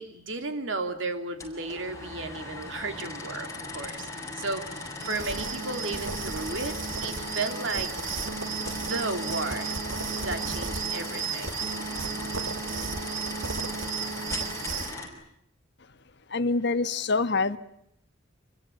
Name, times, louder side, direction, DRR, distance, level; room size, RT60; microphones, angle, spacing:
voice 1, 0.0-7.9 8.6-9.7 10.2-11.6, right 3 dB, 75° right, 3.1 m, -34 dB
sound 1, 1.4-15.1, left 3 dB, 15° left, 5.9 m, -38 dB
sound 2, 5.0-15.0, right 5 dB, 90° right, 2.3 m, -34 dB
voice 2, 16.3-17.6, left 3 dB, 60° left, 1.2 m, -25 dB
27.0 x 23.0 x 8.7 m
head